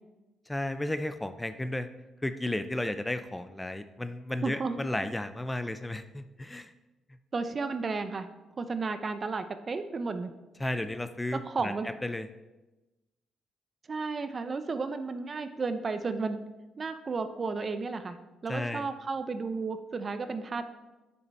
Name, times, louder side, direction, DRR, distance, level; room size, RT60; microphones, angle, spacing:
voice 1, 0.5-1.9 2.2-6.7 10.6-12.3 18.5-18.9, left 1 dB, 10° left, 10 dB, 0.4 m, -33 dB
voice 2, 4.4-4.8 7.3-8.3 8.6-10.3 11.5-11.9 13.9-16.4 16.8-20.6, right 4 dB, 35° right, 10 dB, 0.6 m, -33 dB
9.2 x 5.6 x 4.2 m, 1.1 s
cardioid pair, 90°, 0 cm